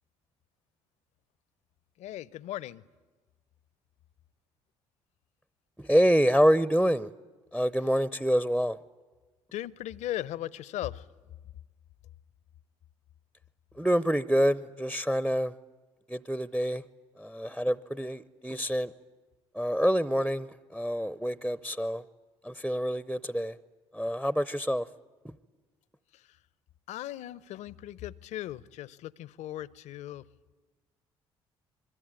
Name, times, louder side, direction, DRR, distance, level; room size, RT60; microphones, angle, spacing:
voice 1, 2.0-2.8 9.5-11.1 26.1-26.4 26.9-30.3, left 13 dB, 60° left, 21 dB, 0.7 m, -38 dB
voice 2, 5.8-7.1 7.5-8.8 13.8-15.5 16.1-16.8 17.2-18.9 19.5-22.0 22.4-23.6 23.9-24.9, equal, ahead, 17 dB, 0.7 m, -27 dB
25.5 x 23.0 x 9.0 m, 1.3 s
hypercardioid pair, 50°, 13 cm